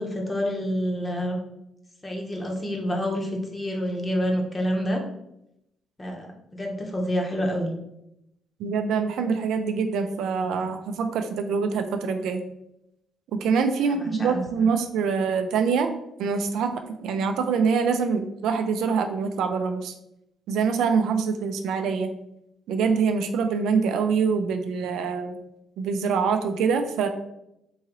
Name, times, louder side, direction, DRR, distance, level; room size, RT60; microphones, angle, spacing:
voice 1, 0.0-1.4 2.0-5.0 6.0-7.7 13.9-14.7, equal, 20° left, 1 dB, 0.8 m, -28 dB
voice 2, 8.6-12.4 13.3-15.9 16.2-19.9 20.5-22.1 22.7-25.4 25.8-27.1, right 5 dB, 80° right, 7 dB, 0.3 m, -25 dB
3.7 x 2.7 x 2.9 m, 0.82 s
cardioid pair, 90°, 0 cm